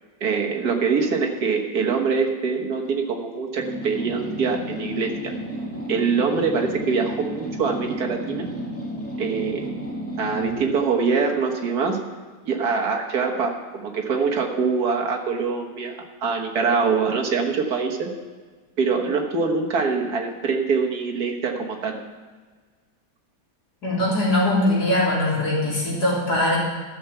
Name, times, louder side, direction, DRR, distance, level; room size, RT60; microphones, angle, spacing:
voice 1, 0.2-5.3 5.9-8.5 9.2-9.7 10.2-12.1 12.5-13.5 13.8-18.1 18.8-22.0, right 5 dB, 60° right, 1 dB, 1.9 m, -24 dB
sound 1, 3.6-10.6, equal, 10° left, 2.1 m, -32 dB
voice 2, 23.8-26.6, left 1 dB, 60° left, -6 dB, 4.1 m, -21 dB
13.0 x 6.8 x 7.1 m, 1.5 s
omnidirectional pair, 1.9 m